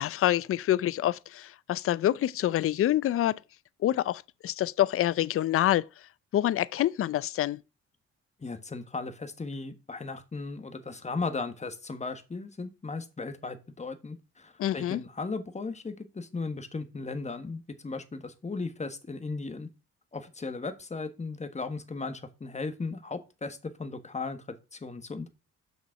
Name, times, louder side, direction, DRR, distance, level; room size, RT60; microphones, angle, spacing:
voice 1, 0.0-3.4 3.8-5.8 6.3-7.6 14.6-15.0, left 13 dB, 50° left, 0.5 m, -26 dB
voice 2, 8.4-19.7 20.1-25.3, left 3 dB, 25° left, 1.4 m, -36 dB
7.3 x 6.2 x 5.8 m
cardioid pair, 90°, 30 cm